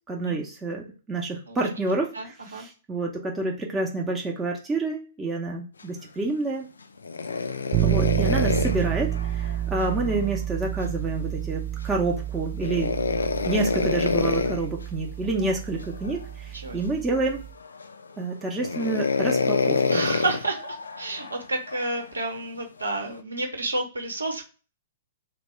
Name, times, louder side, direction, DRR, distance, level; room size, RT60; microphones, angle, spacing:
voice 1, 0.1-6.7 7.8-13.0 13.4-17.4 18.2-20.0, right 2 dB, 15° right, -1 dB, 0.7 m, -28 dB
voice 2, 2.1-2.7 15.4-15.6 16.5-16.8 19.9-24.4, right 2 dB, 85° right, 3 dB, 1.0 m, -30 dB
sound 1, 7.0-10.3 12.6-14.6 15.8-16.2 16.8-16.9 17.6-18.1 18.6-22.0 22.8-23.2, left 4 dB, 80° left, 0.3 m, -27 dB
sound 2, 7.7-17.5, right 12 dB, 35° right, 0.3 m, -30 dB
3.0 x 2.2 x 3.1 m, 0.35 s
figure-of-eight pair, 115°, 0 cm